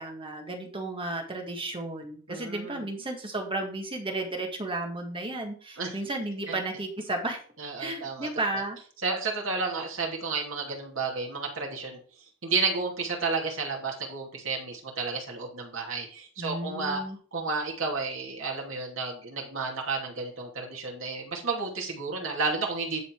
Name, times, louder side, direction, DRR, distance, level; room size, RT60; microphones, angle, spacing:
voice 1, 0.0-7.4 7.8-8.8 16.4-17.2, right 2 dB, 25° right, 2 dB, 1.8 m, -33 dB
voice 2, 2.3-2.8 5.8-6.0 6.5-6.6 7.6-8.3 9.0-12.0 12.4-17.0 17.3-23.0, right 4 dB, 70° right, 0 dB, 2.6 m, -31 dB
10.5 x 4.1 x 4.6 m, 0.43 s
head